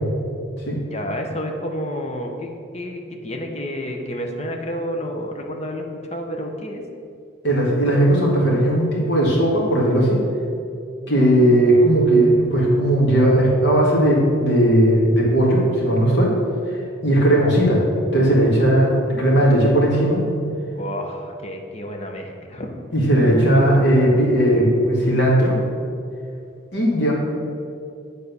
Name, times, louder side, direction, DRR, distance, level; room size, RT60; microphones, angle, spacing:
voice 1, 0.8-6.8 20.7-22.8 23.2-23.9, equal, 35° left, 3 dB, 0.8 m, -30 dB
voice 2, 7.4-10.2 11.1-16.4 16.7-17.8 18.1-20.2 22.9-25.6 26.7-27.1, right 1 dB, 65° left, -4 dB, 2.0 m, -17 dB
8.3 x 4.1 x 6.8 m, 2.5 s
head